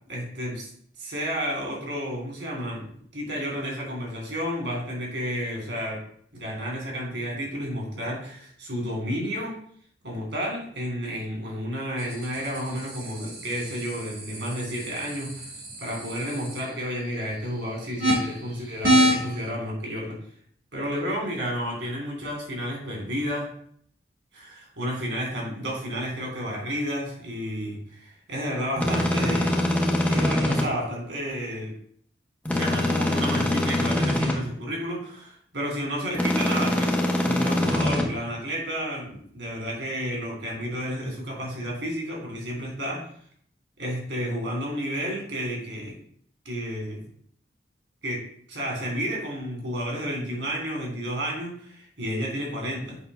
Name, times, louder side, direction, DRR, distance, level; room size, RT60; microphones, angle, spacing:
voice 1, 0.1-0.7 1.0-6.0 6.3-9.5 10.0-15.5 15.8-20.2 20.7-23.5 24.3-29.6 30.0-31.7 32.5-43.1 43.8-46.0 46.4-47.0 48.0-53.0, equal, 90° right, -2 dB, 3.1 m, -31 dB
sound 1, 12.0-19.5, right 1 dB, 60° right, 2.3 m, -29 dB
sound 2, 28.8-30.7 32.5-34.4 36.1-38.0, left 1 dB, 10° left, 0.9 m, -24 dB
8.2 x 2.8 x 5.5 m, 0.63 s
head